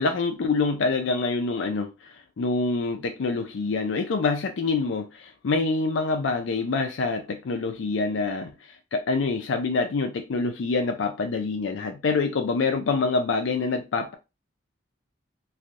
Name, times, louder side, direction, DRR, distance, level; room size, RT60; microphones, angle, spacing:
voice 1, 0.0-14.1, left 3 dB, 70° left, 0.4 m, -26 dB
3.2 x 2.6 x 2.4 m
head